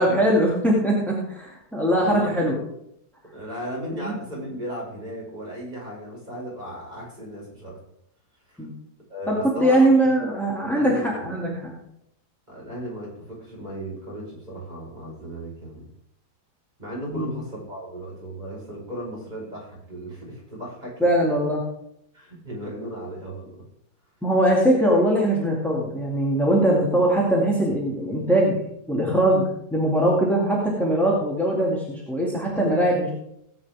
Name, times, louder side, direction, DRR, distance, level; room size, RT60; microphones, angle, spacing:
voice 1, 0.0-2.6 3.9-4.1 8.6-8.7 9.3-11.7 17.1-17.3 21.0-21.6 24.2-28.6 28.9-33.1, right 1 dB, ahead, -4 dB, 2.5 m, -21 dB
voice 2, 2.0-2.3 3.3-7.8 8.5-8.7 9.1-9.9 10.8-11.3 12.5-15.8 16.8-21.1 22.1-23.7, equal, 25° right, -4 dB, 5.3 m, -36 dB
18.0 x 8.8 x 3.6 m, 0.75 s
omnidirectional pair, 1.8 m